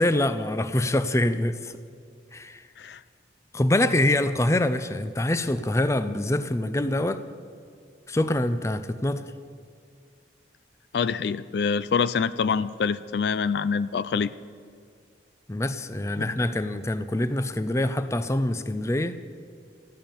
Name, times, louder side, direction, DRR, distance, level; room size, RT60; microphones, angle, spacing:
voice 1, 0.0-1.7 2.3-2.6 3.5-7.2 8.1-9.2 15.5-19.2, left 1 dB, 15° left, 12 dB, 0.5 m, -25 dB
voice 2, 10.9-14.3 16.2-16.3, left 5 dB, 70° left, 16 dB, 0.4 m, -25 dB
14.5 x 11.5 x 6.9 m, 2.1 s
head